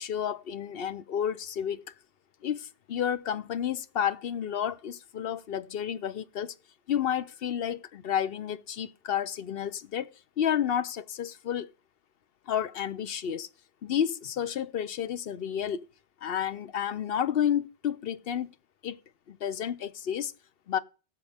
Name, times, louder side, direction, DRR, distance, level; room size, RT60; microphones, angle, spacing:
voice 1, 0.0-1.8 2.4-6.5 6.9-10.1 10.4-11.7 12.5-13.5 13.8-15.8 16.2-18.5 18.8-19.0 19.3-20.3 20.7-20.8, left 9 dB, 65° left, 0.9 m, -31 dB
17.5 x 7.6 x 3.5 m
omnidirectional pair, 1.1 m